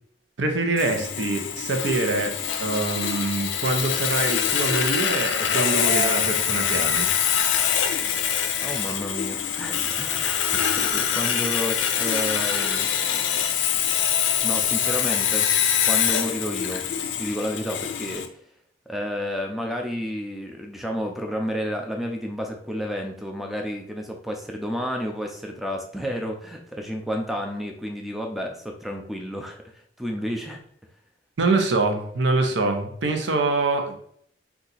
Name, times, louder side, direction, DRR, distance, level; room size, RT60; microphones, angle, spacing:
voice 1, 0.4-2.3 2.6-7.1 31.4-34.0, right 3 dB, 80° right, 4 dB, 0.6 m, -25 dB
Sawing, 0.8-18.3, left 8 dB, 90° left, 0.4 m, -24 dB
voice 2, 8.6-10.4 10.8-12.9 14.4-15.5 15.8-16.9 17.2-18.3 18.9-30.6, equal, ahead, 2 dB, 0.4 m, -31 dB
2.7 x 2.4 x 3.9 m, 0.63 s
head